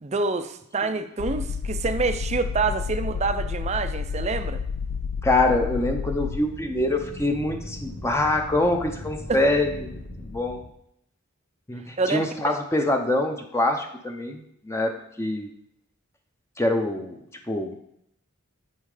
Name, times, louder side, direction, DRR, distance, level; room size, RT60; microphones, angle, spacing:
voice 1, 0.0-4.6 9.3-9.4 12.0-12.2, right 4 dB, 30° right, 9 dB, 0.5 m, -27 dB
sound 1, 1.2-6.5, left 5 dB, 60° left, 0.4 m, -30 dB
voice 2, 5.2-10.6 11.7-15.5 16.6-17.2 17.5-17.7, left 2 dB, 10° left, 3 dB, 0.7 m, -25 dB
sound 2, 5.8-10.7, left 1 dB, 75° left, 1.1 m, -39 dB
8.1 x 5.5 x 4.9 m, 0.75 s
head